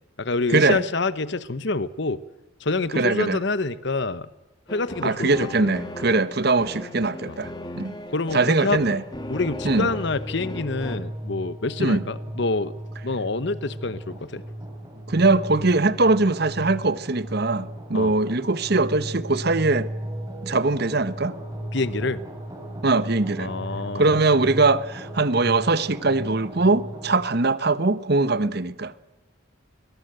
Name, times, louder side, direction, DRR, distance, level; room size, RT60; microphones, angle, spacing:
voice 1, 0.2-2.2 2.6-4.3 4.7-5.7 7.3-7.4 8.1-8.9 9.3-12.7 13.0-14.4 17.9-18.2 21.7-22.2 23.4-24.3, left 3 dB, 55° left, 0.9 m, -27 dB
voice 2, 2.9-3.4 5.0-7.5 7.8-8.0 8.3-9.0 9.6-9.9 11.8-12.0 15.1-19.9 20.4-21.3 22.8-23.5 23.9-28.9, right 3 dB, 50° right, 1.0 m, -21 dB
sound 1, 4.7-11.0, left 1 dB, 20° left, 1.8 m, -37 dB
sound 2, 9.0-27.1, right 1 dB, 15° right, 4.2 m, -36 dB
21.5 x 20.5 x 7.9 m
head